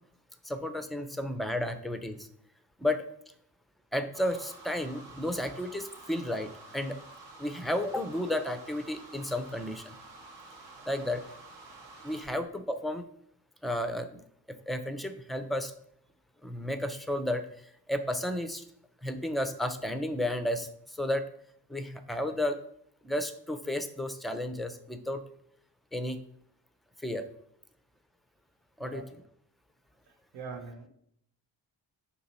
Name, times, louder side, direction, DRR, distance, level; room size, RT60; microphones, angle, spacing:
voice 1, 0.5-2.2 2.8-3.0 3.9-7.0 7.4-9.8 10.9-11.2 12.0-13.0 13.6-14.1 14.5-15.7 16.4-17.4 17.9-18.6 19.0-20.7 21.0-21.3 21.7-22.6 23.1-25.2 25.9-26.2 27.0-27.3 28.8-29.0, left 1 dB, ahead, 9 dB, 0.4 m, -32 dB
sound 1, 4.1-12.4, right 2 dB, 65° right, 1.0 m, -50 dB
voice 2, 30.3-30.9, right 4 dB, 85° right, 4 dB, 0.7 m, -42 dB
4.5 x 2.9 x 4.0 m, 0.69 s
hypercardioid pair, 40°, 48 cm